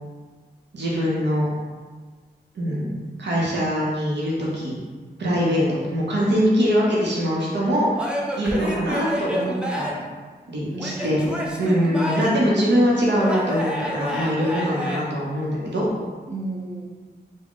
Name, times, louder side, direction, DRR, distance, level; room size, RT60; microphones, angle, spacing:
voice 1, 0.7-1.5 2.5-4.8 5.2-8.1 8.4-9.9 10.5-11.2 11.6-15.8, equal, 90° right, -5 dB, 0.7 m, -22 dB
Male speech man speaking / Yell / Laughter, 8.0-10.1 10.8-12.5 13.2-15.0, equal, 5° right, 0.5 m, -29 dB
voice 2, 10.7-11.7 16.3-16.8, right 2 dB, 45° right, -6 dB, 0.8 m, -33 dB
3.6 x 2.1 x 3.6 m, 1.4 s
wide cardioid pair, 105°, 18 cm